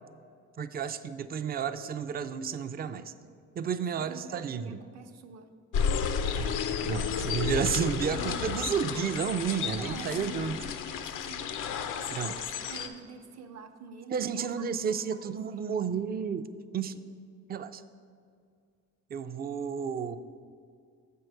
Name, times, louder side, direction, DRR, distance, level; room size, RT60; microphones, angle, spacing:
voice 1, 0.6-3.1 3.6-4.8 6.4-6.5 6.8-10.6 12.1-12.3 14.1-16.5 16.7-17.0 17.5-17.8 19.1-20.2, right 7 dB, 30° right, 11 dB, 0.4 m, -32 dB
voice 2, 4.0-5.5 9.8-10.6 11.0-11.6 11.9-15.3, right 5 dB, 60° right, 7 dB, 0.7 m, -47 dB
sound 1, 5.7-12.9, left 6 dB, 85° left, 0.6 m, -32 dB
7.5 x 4.6 x 6.5 m, 2.2 s
cardioid pair, 90°, 30 cm